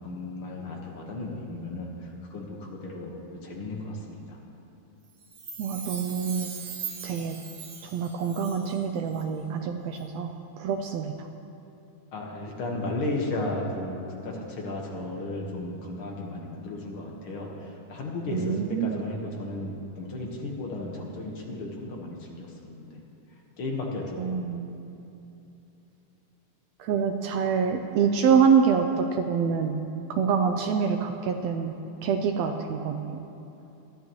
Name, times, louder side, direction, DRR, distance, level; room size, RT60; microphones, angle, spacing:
voice 1, 0.0-4.4 12.1-23.0 23.6-24.6, left 2 dB, 50° left, -1 dB, 1.8 m, -34 dB
Chime, 5.2-8.9 9.1-9.2, right 6 dB, 55° right, 1.4 m, -40 dB
voice 2, 5.6-6.5 7.0-7.4 7.9-11.3 18.3-19.0 24.2-24.9 26.8-29.8 30.1-31.7 32.0-33.2, right 6 dB, 80° right, 5 dB, 1.5 m, -26 dB
20.5 x 13.0 x 3.1 m, 2.9 s
omnidirectional pair, 3.6 m